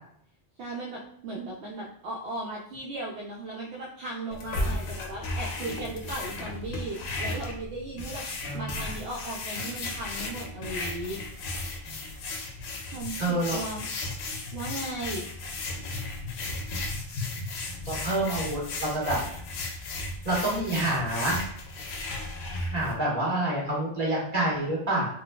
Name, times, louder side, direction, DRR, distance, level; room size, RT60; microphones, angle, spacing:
voice 1, 0.6-11.2 12.9-13.9 14.5-15.3, right 2 dB, 70° right, -3 dB, 0.8 m, -37 dB
sound 1, 4.3-22.9, left 2 dB, 70° left, 0.8 m, -35 dB
voice 2, 8.4-8.8 11.9-12.0 13.2-13.6 17.8-19.2 20.2-21.4 22.6-25.1, right 1 dB, 35° right, -6 dB, 1.3 m, -28 dB
3.9 x 2.3 x 2.2 m, 0.68 s
omnidirectional pair, 1.2 m